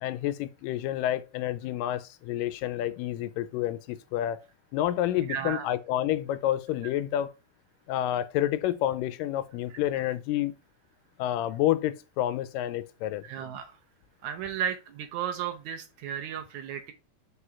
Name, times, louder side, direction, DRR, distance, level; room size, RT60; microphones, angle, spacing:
voice 1, 0.0-4.4 4.7-7.3 7.9-10.5 11.2-13.2, left 12 dB, 85° left, 2.2 m, -29 dB
voice 2, 5.3-5.7 13.2-13.7 14.2-16.9, right 8 dB, 75° right, 1.9 m, -34 dB
4.9 x 4.7 x 5.5 m
omnidirectional pair, 3.9 m